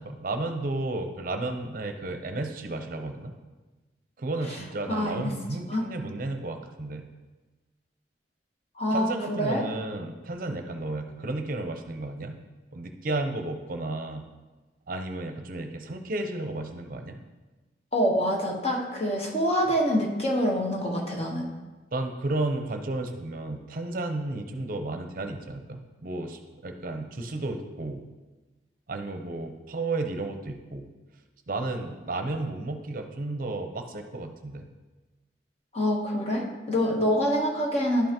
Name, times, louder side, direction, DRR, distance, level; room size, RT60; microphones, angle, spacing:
voice 1, 0.0-3.3 4.2-7.1 8.9-12.4 12.7-14.3 14.9-17.2 21.9-28.1 28.9-30.8 31.5-34.6, right 2 dB, 50° right, 6 dB, 0.6 m, -33 dB
voice 2, 4.9-5.3 5.7-5.8 8.8-9.6 17.9-21.5 35.7-38.1, equal, 35° left, -1 dB, 1.2 m, -26 dB
11.5 x 5.5 x 2.9 m, 1.2 s
head